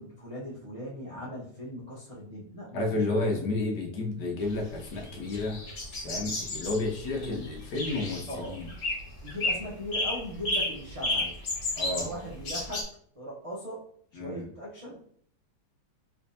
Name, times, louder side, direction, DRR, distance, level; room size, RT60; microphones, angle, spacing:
voice 1, 0.0-3.3 7.1-7.4 8.3-8.6 9.2-11.4 11.8-12.9 13.1-13.8 14.1-15.0, equal, 55° right, -8 dB, 0.3 m, -39 dB
voice 2, 2.7-5.6 6.0-8.7 11.8-12.1 14.1-14.5, left 2 dB, 70° left, 0 dB, 1.3 m, -31 dB
sound 1, 4.5-12.8, left 2 dB, 50° left, 1.5 m, -32 dB
3.3 x 3.2 x 2.7 m, 0.62 s
omnidirectional pair, 2.0 m